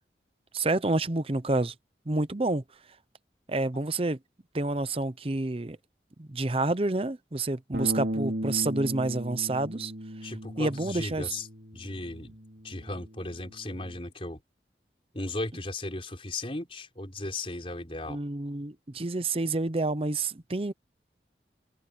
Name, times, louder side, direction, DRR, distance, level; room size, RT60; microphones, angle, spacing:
voice 1, 0.5-1.7 2.1-2.6 3.5-4.2 4.5-5.8 6.2-9.9 10.2-10.3 10.6-11.4 18.1-20.7, right 2 dB, 35° right, 0.8 m, -28 dB
Bass guitar, 7.7-14.0, right 1 dB, 70° right, 4.1 m, -36 dB
voice 2, 10.2-11.5 11.7-12.3 12.6-14.4 15.1-18.2, left 2 dB, 30° left, 4.7 m, -36 dB
head